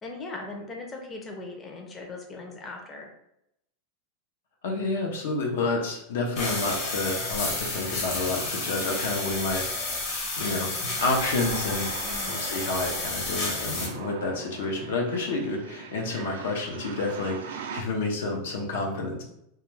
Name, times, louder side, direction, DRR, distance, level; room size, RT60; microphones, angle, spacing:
voice 1, 0.0-3.1 12.0-12.4, left 2 dB, 20° left, 1 dB, 0.5 m, -39 dB
voice 2, 4.6-10.7 11.0-11.9 12.3-19.2, left 3 dB, 80° left, 1 dB, 0.6 m, -29 dB
sound 1, 6.3-13.9, left 2 dB, 50° left, 0.9 m, -31 dB
sound 2, 11.0-17.8, right 6 dB, 90° right, 0.3 m, -40 dB
2.3 x 2.2 x 3.2 m, 0.78 s
supercardioid pair, 145°, 0 cm